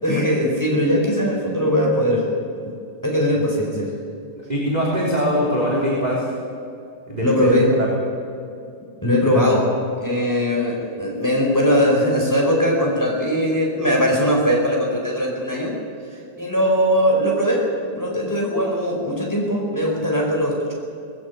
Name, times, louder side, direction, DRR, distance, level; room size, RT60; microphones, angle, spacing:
voice 1, 0.0-2.2 2.6-2.7 3.0-3.9 7.2-7.7 9.0-9.6 10.0-15.8 16.1-17.6 17.9-20.7, equal, 5° left, -2 dB, 4.4 m, -20 dB
voice 2, 4.5-6.3 7.1-7.9 9.3-9.4, equal, 10° right, -4 dB, 3.2 m, -22 dB
19.0 x 15.5 x 9.6 m, 2.5 s
omnidirectional pair, 4.0 m